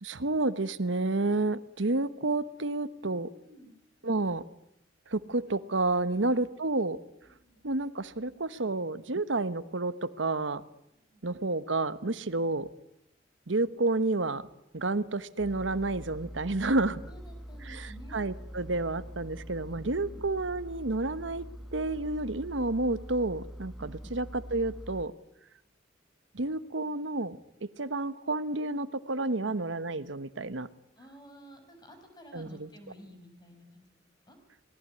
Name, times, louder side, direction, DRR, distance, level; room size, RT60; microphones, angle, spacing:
voice 1, 0.0-3.3 4.0-4.4 5.1-7.0 7.6-10.6 11.2-12.7 13.5-14.5 14.7-17.0 17.6-21.5 21.7-25.1 26.3-30.7 32.3-32.7, right 2 dB, 75° right, 14 dB, 1.2 m, -30 dB
voice 2, 3.3-3.7 4.0-4.1 7.4-7.6 10.9-11.3 17.1-18.2 19.8-20.3 23.8-24.2 31.0-34.0 34.2-34.4, equal, 25° left, 6 dB, 5.7 m, -52 dB
Engine, 15.4-25.0, equal, ahead, 1.5 m, -44 dB
26.5 x 19.0 x 9.8 m, 0.81 s
head